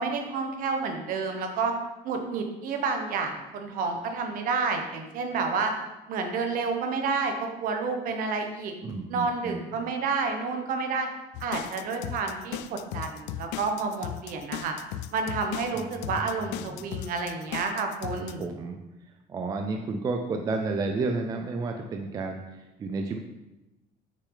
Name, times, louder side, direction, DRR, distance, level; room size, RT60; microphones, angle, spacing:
voice 1, 0.0-1.7 2.0-5.7 6.1-8.7 9.1-11.1 11.4-14.8 15.1-18.4, right 4 dB, 55° right, 4 dB, 1.0 m, -30 dB
voice 2, 8.8-9.7 15.7-16.0 16.4-16.8 18.4-18.8 19.3-23.2, right 3 dB, 20° right, 4 dB, 0.4 m, -31 dB
sound 1, 11.3-18.4, left 12 dB, 85° left, 0.4 m, -37 dB
6.5 x 6.2 x 3.8 m, 1.0 s
cardioid pair, 175°, 18 cm